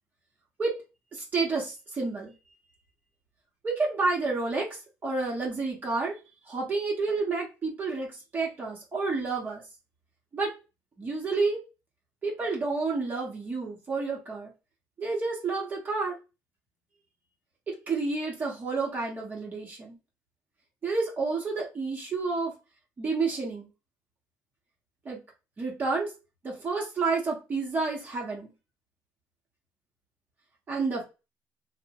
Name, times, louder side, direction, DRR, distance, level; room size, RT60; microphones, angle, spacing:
voice 1, 1.1-2.3 3.6-4.7 5.0-6.1 6.5-8.1 8.3-9.6 10.3-10.5 11.0-11.6 12.2-14.5 15.0-16.1 17.7-20.0 20.8-22.5 23.0-23.7 25.0-25.2 25.6-26.1 26.4-28.5 30.7-31.0, right 3 dB, 30° right, 0.8 m, -29 dB
2.8 x 2.0 x 2.8 m
cardioid pair, 140°, 6 cm